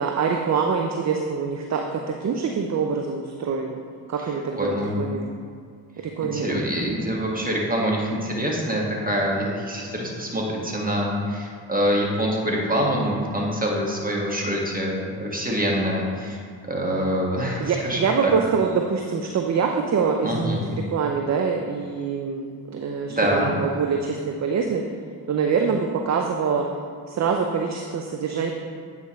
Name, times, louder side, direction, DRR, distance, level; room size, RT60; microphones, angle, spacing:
voice 1, 0.0-3.8 4.1-5.2 6.0-6.6 17.6-20.6 20.9-24.8 25.3-26.7 27.1-28.5, right 5 dB, 35° right, 3 dB, 0.6 m, -25 dB
voice 2, 4.6-4.9 6.2-16.4 16.7-18.3 20.2-20.6 23.1-23.5, equal, 15° right, -2 dB, 1.8 m, -25 dB
9.2 x 5.0 x 3.2 m, 2.1 s
hypercardioid pair, 45°, 49 cm